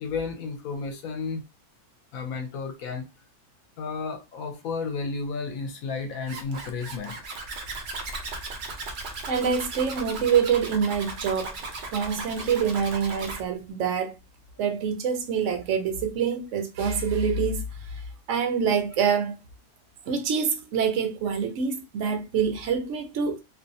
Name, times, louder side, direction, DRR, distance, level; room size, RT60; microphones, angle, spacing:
voice 1, 0.0-1.4 2.1-3.1 3.8-7.3, left 4 dB, 75° left, 1.0 m, -32 dB
Zipper (clothing), 6.3-13.4, right 3 dB, 90° right, 0.4 m, -36 dB
voice 2, 9.3-11.6 11.9-14.2 14.6-17.6 17.9-18.0 18.3-19.3 20.1-23.4, right 6 dB, 65° right, 0.8 m, -26 dB
2.6 x 2.1 x 2.6 m
omnidirectional pair, 1.6 m